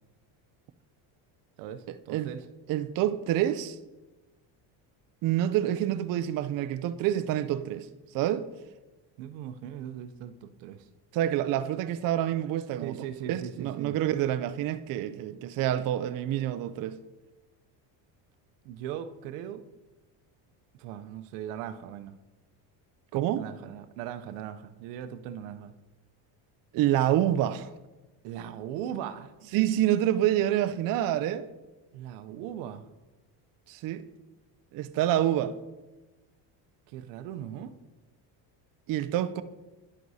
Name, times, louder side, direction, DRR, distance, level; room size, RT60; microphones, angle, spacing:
voice 1, 1.6-2.4 9.2-10.9 12.8-14.0 18.6-19.7 20.7-22.2 23.4-25.7 28.2-29.3 31.9-32.9 36.9-37.7, right 10 dB, 85° right, 0.7 m, -39 dB
voice 2, 2.7-3.8 5.2-7.9 8.1-8.5 11.1-13.0 13.3-17.0 23.1-23.5 26.7-27.7 29.5-31.5 33.7-34.1 34.7-35.5 38.9-39.4, right 12 dB, 45° right, 0.4 m, -27 dB
10.5 x 7.7 x 2.7 m
cardioid pair, 110°, 50 cm